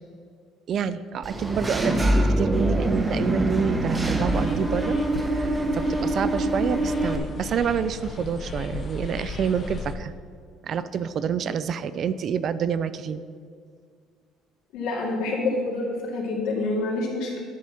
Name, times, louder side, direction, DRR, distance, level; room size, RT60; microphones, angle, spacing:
voice 1, 0.7-5.0 5.3-10.1 10.6-13.2, right 7 dB, 40° right, 14 dB, 0.3 m, -28 dB
Engine / Mechanisms, 1.2-7.2, right 1 dB, 15° right, 0.7 m, -24 dB
sound 1, 4.3-10.0, left 3 dB, 30° left, 0.6 m, -36 dB
voice 2, 14.7-17.4, left 2 dB, 80° left, -3 dB, 2.4 m, -27 dB
11.0 x 4.2 x 6.2 m, 2.1 s
cardioid pair, 160°, 0 cm